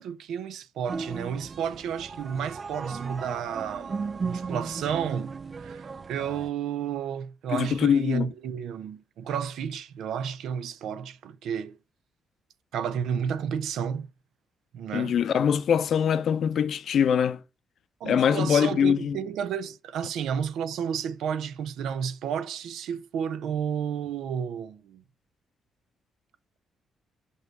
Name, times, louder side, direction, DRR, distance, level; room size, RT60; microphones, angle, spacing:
voice 1, 0.0-11.8 12.7-14.1 14.7-15.2 18.0-25.0, right 8 dB, 80° right, 0.6 m, -32 dB
sound 1, 0.9-6.5, right 5 dB, 35° right, 0.3 m, -36 dB
voice 2, 7.5-8.3 14.9-17.4 18.0-19.2, left 8 dB, 65° left, 0.6 m, -23 dB
5.4 x 4.7 x 4.6 m
cardioid pair, 90°, 0 cm